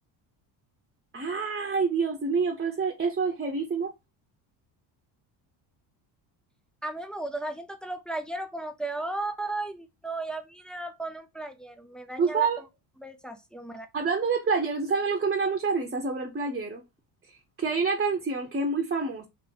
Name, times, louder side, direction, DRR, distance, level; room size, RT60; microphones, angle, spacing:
voice 1, 1.1-3.9 12.2-12.6 13.9-16.8 17.6-19.2, right 4 dB, 20° right, 0.8 m, -27 dB
voice 2, 6.8-12.5 13.0-13.9, right 2 dB, ahead, 0.3 m, -35 dB
3.0 x 2.8 x 3.8 m
supercardioid pair, 85°, 50 cm